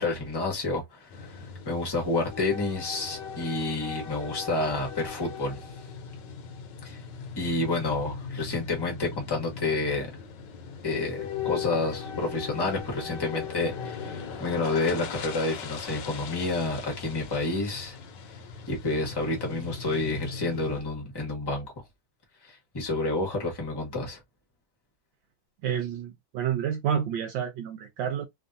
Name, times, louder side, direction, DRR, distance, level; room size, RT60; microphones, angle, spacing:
voice 1, 0.0-5.7 6.8-7.0 7.4-10.1 10.8-18.0 18.3-18.4 18.7-21.7 22.4-24.2, left 2 dB, 20° left, 0.6 m, -29 dB
sound 1, 1.1-20.8, left 6 dB, 70° left, 1.3 m, -39 dB
voice 2, 25.6-28.3, right 8 dB, 75° right, 1.2 m, -29 dB
3.4 x 2.4 x 2.6 m
omnidirectional pair, 2.2 m